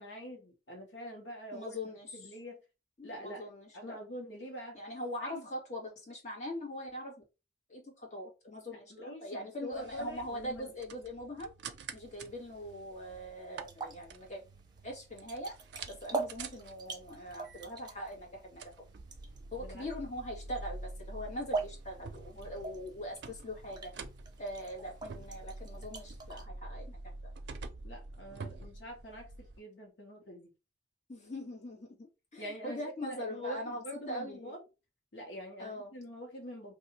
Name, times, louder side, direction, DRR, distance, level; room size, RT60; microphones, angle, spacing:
voice 1, 0.0-1.8 2.1-2.6 3.0-3.4 3.7-4.8 5.2-5.5 8.7-10.7 19.6-19.9 27.8-30.5 32.4-34.6 35.1-36.7, equal, 85° left, 1.0 m, -45 dB
voice 2, 1.5-2.3 3.0-4.0 4.7-7.1 7.7-11.5 11.9-14.4 14.8-15.5 15.9-18.6 19.5-23.9 24.4-27.0 31.1-34.5 35.6-35.9, left 1 dB, 40° left, 1.4 m, -42 dB
sound 1, 9.7-29.6, right 3 dB, 80° right, 0.5 m, -48 dB
sound 2, 12.0-26.4, right 4 dB, 25° right, 0.6 m, -44 dB
2.7 x 2.3 x 4.1 m
head